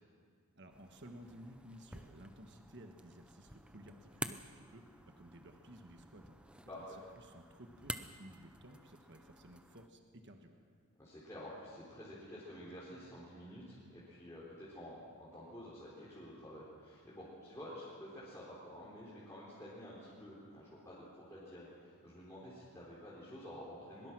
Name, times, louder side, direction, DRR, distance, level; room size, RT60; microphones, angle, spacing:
voice 1, 0.5-6.4 6.7-10.5, right 1 dB, 50° right, 4 dB, 1.5 m, -55 dB
sound 1, 0.7-9.9, right 1 dB, 5° right, 0.6 m, -50 dB
voice 2, 11.0-24.1, equal, 15° left, -9 dB, 4.2 m, -50 dB
22.5 x 22.0 x 6.2 m, 2.1 s
head